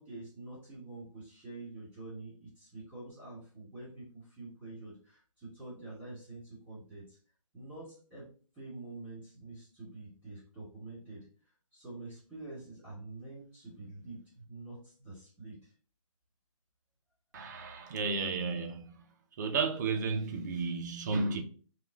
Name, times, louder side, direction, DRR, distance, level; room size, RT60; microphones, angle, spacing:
voice 1, 0.0-7.2 7.5-8.3 8.5-11.3 11.7-15.7, right 2 dB, 10° right, 2.3 m, -47 dB
voice 2, 17.3-19.0 19.4-21.4, right 4 dB, 35° right, 0.7 m, -33 dB
6.0 x 2.4 x 3.5 m
hypercardioid pair, 155°, 17 cm